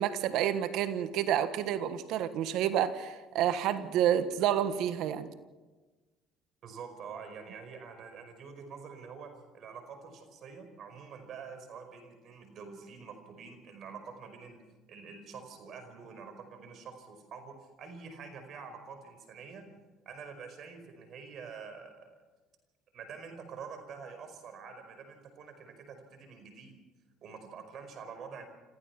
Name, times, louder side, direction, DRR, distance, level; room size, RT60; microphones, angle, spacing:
voice 1, 0.0-5.3, right 10 dB, 70° right, 12 dB, 1.4 m, -29 dB
voice 2, 6.6-14.6 14.9-19.6 20.1-21.9 22.9-26.8 27.2-28.5, right 5 dB, 55° right, 7 dB, 5.0 m, -46 dB
27.0 x 16.0 x 6.0 m, 1.2 s
supercardioid pair, 90°, 0 cm